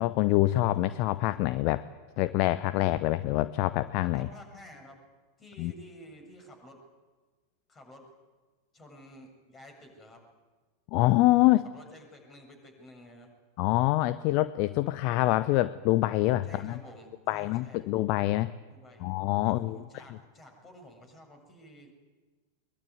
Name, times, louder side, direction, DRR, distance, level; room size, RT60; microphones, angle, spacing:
voice 1, 0.0-1.8 2.2-4.3 5.6-5.7 10.9-11.6 13.6-16.8 17.3-18.5 19.0-20.0, left 17 dB, 45° left, 16 dB, 0.7 m, -25 dB
voice 2, 4.1-5.0 5.4-6.8 7.7-8.1 8.7-10.2 11.6-13.3 16.4-17.9 18.7-19.2 19.4-21.9, left 1 dB, 20° left, 4 dB, 7.1 m, -51 dB
22.5 x 22.0 x 9.6 m, 1.3 s
figure-of-eight pair, 90°, 0 cm